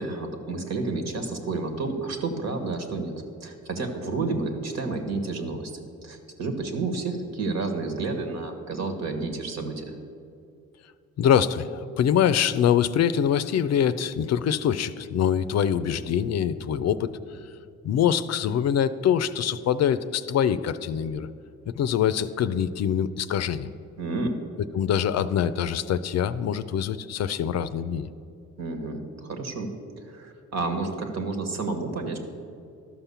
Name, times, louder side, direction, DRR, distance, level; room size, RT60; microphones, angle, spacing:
voice 1, 0.0-3.1 3.4-5.7 6.0-9.9 24.0-24.4 28.6-29.7 30.0-32.2, right 3 dB, 60° right, 6 dB, 1.6 m, -30 dB
voice 2, 11.2-17.1 17.8-21.3 21.7-23.7 24.7-28.1, left 9 dB, 60° left, 13 dB, 0.5 m, -24 dB
12.5 x 5.8 x 6.9 m, 2.5 s
cardioid pair, 90°, 30 cm